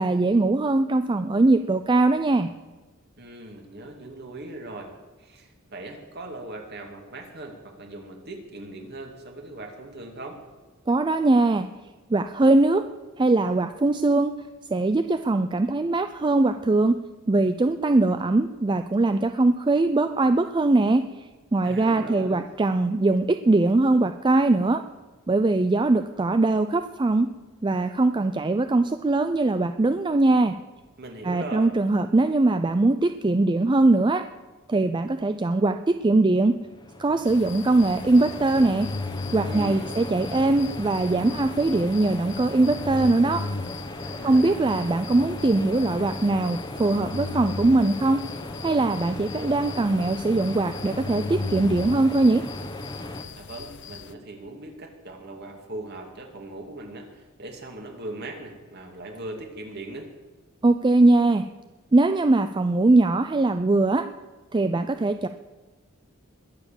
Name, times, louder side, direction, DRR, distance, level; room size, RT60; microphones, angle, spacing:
voice 1, 0.0-2.5 10.9-11.7 12.1-12.9 13.2-14.3 14.7-17.0 17.3-24.8 25.3-27.3 27.6-30.6 31.2-34.3 34.7-36.6 37.0-38.9 39.3-43.5 44.2-48.3 48.6-52.5 60.6-61.5 61.9-64.1 64.5-65.3, right 2 dB, 20° right, 9 dB, 0.4 m, -21 dB
voice 2, 3.2-10.4 21.6-22.4 31.0-31.7 39.4-40.0 44.0-44.7 53.4-60.1, right 2 dB, 50° right, 3 dB, 2.4 m, -39 dB
sound 1, 36.6-53.2, left 1 dB, 20° left, 1.1 m, -37 dB
sound 2, 37.3-54.1, left 4 dB, 55° left, 0.7 m, -38 dB
21.0 x 7.1 x 7.1 m, 1.3 s
head